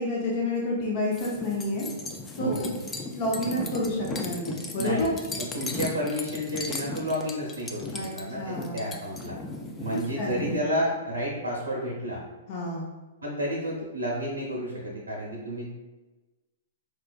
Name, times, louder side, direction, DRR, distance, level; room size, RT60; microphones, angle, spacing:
voice 1, 0.0-1.9 2.4-2.7 3.1-5.1 7.9-8.1 8.4-9.0 9.9-10.7 12.5-12.9, left 1 dB, 45° left, -3 dB, 0.7 m, -29 dB
sound 1, 1.1-10.6, left 3 dB, 20° left, 0.4 m, -36 dB
voice 2, 2.4-2.7 4.8-9.4 9.8-12.2 13.2-15.7, equal, 90° right, -3 dB, 0.7 m, -31 dB
4.3 x 2.4 x 2.3 m, 1.2 s
hypercardioid pair, 120°, 0 cm